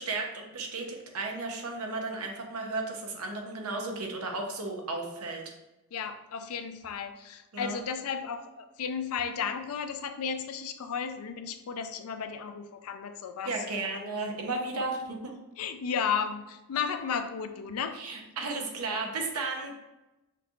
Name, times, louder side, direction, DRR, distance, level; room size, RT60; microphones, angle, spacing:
voice 1, 0.0-5.5 7.5-7.8 13.4-15.3 17.9-19.7, right 3 dB, 75° right, 2 dB, 0.9 m, -34 dB
voice 2, 5.9-13.5 15.6-18.0, left 6 dB, 75° left, 9 dB, 0.4 m, -34 dB
5.8 x 3.0 x 2.5 m, 0.98 s
head